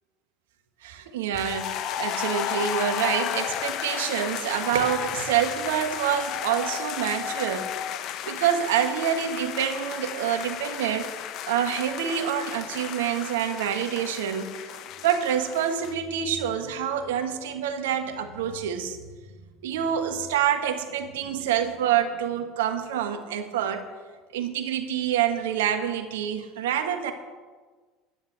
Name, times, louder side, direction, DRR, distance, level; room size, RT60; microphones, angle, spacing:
voice 1, 0.8-7.7 8.2-11.1 11.5-14.5 15.0-19.0 19.6-23.9 24.3-27.1, right 9 dB, 75° right, 7 dB, 1.5 m, -27 dB
sound 1, 1.3-15.9, left 10 dB, 55° left, 1.0 m, -33 dB
11.0 x 10.0 x 7.5 m, 1.4 s
hypercardioid pair, 70°, 0 cm